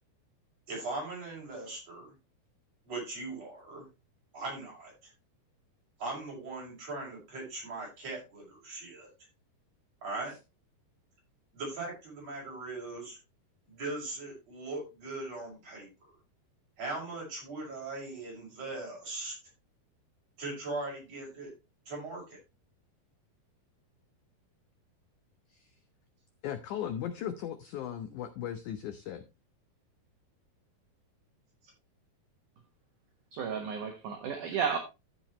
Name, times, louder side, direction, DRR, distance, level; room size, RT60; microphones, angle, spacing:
voice 1, 0.7-2.1 2.9-3.9 4.3-5.1 6.0-9.1 10.0-10.4 11.5-13.2 13.7-15.9 16.8-19.4 20.4-21.5 21.9-22.4, right 2 dB, 40° right, 7.3 m, -39 dB
voice 2, 26.4-29.2, left 10 dB, 85° left, 1.7 m, -37 dB
voice 3, 33.3-34.8, right 7 dB, 60° right, 2.5 m, -32 dB
13.0 x 7.4 x 3.1 m
omnidirectional pair, 4.7 m